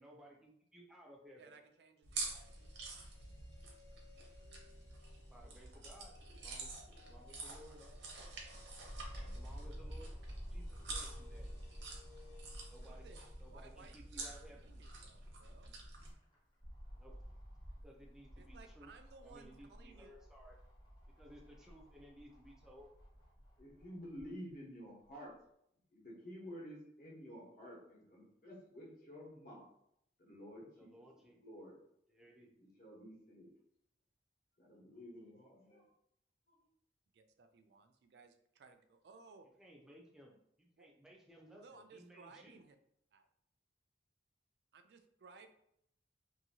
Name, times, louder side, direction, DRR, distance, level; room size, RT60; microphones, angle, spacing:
voice 1, 0.0-1.5 5.3-6.1 6.4-8.1 9.2-10.1 10.5-11.5 12.7-13.0 13.4-14.6 16.9-17.1 17.8-18.9 19.2-20.6 21.2-22.9 30.8-31.4 32.1-32.5 39.6-42.6, equal, 5° right, -2 dB, 0.5 m, -59 dB
voice 2, 1.4-2.5 12.9-13.2 13.5-15.8 18.4-20.1 37.1-39.5 40.8-40.9 41.5-42.8 43.1-43.3 44.7-45.5, right 4 dB, 65° right, 7 dB, 0.3 m, -60 dB
sound 1, 2.0-16.1, right 3 dB, 80° right, 0.7 m, -48 dB
sound 2, 2.2-14.3 14.6-14.7, left 6 dB, 65° left, 0.6 m, -66 dB
sound 3, 8.8-13.9 14.3-14.4 15.7-24.3 25.1-25.2, equal, 25° left, 0.8 m, -51 dB
voice 3, 23.6-25.3 25.9-29.6 30.2-31.1 31.4-31.8 32.6-33.5 34.6-35.8 36.5-36.6, equal, 50° left, -4 dB, 1.1 m, -51 dB
2.8 x 2.6 x 2.7 m, 0.74 s
head